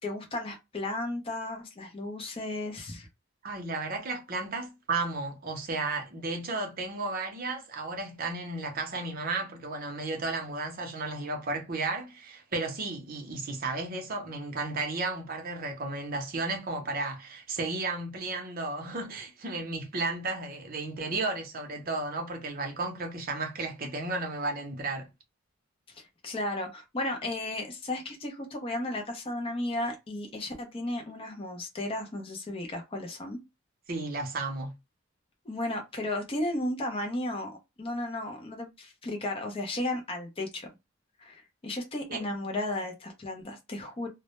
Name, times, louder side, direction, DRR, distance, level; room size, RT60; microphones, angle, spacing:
voice 1, 0.0-3.1 25.9-33.4 35.5-40.7 41.2-44.1, left 1 dB, 25° left, 0.5 m, -34 dB
voice 2, 3.4-25.1 33.9-34.7 42.1-42.3, right 3 dB, 45° right, 0.6 m, -33 dB
2.1 x 2.0 x 2.9 m
head